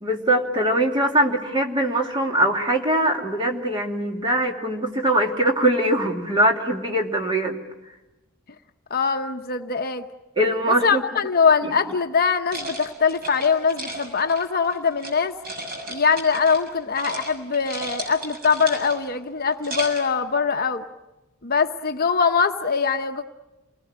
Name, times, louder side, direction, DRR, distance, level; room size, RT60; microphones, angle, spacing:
voice 1, 0.0-7.6 10.4-11.0 11.6-11.7, right 1 dB, 20° right, 2 dB, 2.5 m, -22 dB
voice 2, 8.9-10.0 10.7-15.4 15.9-20.8 21.4-23.2, left 5 dB, 45° left, 6 dB, 1.0 m, -22 dB
sound 1, 12.5-15.1 15.4-16.7 16.9-17.3 17.5-19.1 19.5-20.1, right 2 dB, 45° right, 6.6 m, -34 dB
28.5 x 20.0 x 8.8 m, 1.0 s
head